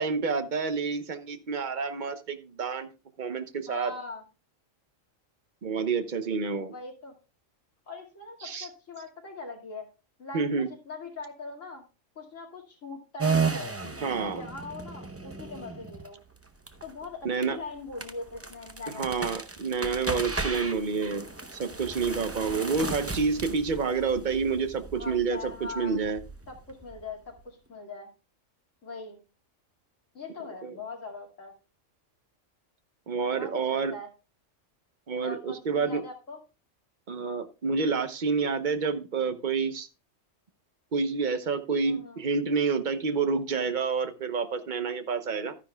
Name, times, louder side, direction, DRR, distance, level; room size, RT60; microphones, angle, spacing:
voice 1, 0.0-2.9 3.2-3.9 5.6-6.7 8.4-8.7 10.3-10.7 14.0-14.5 17.2-17.6 19.0-26.2 30.6-30.8 33.1-33.9 35.1-36.0 37.1-39.9 40.9-45.6, right 5 dB, 45° right, 10 dB, 0.9 m, -29 dB
voice 2, 3.7-4.2 6.7-7.2 7.9-9.9 10.2-11.9 12.2-13.8 14.1-16.2 16.8-19.3 22.4-22.7 24.9-26.0 26.5-28.1 28.8-29.2 30.1-31.5 33.3-34.1 35.2-36.4 41.8-42.2, left 3 dB, 75° left, 0 dB, 2.6 m, -41 dB
sound 1, 13.2-27.4, right 4 dB, 15° right, 0.5 m, -35 dB
12.0 x 9.9 x 2.3 m, 0.30 s
omnidirectional pair, 1.3 m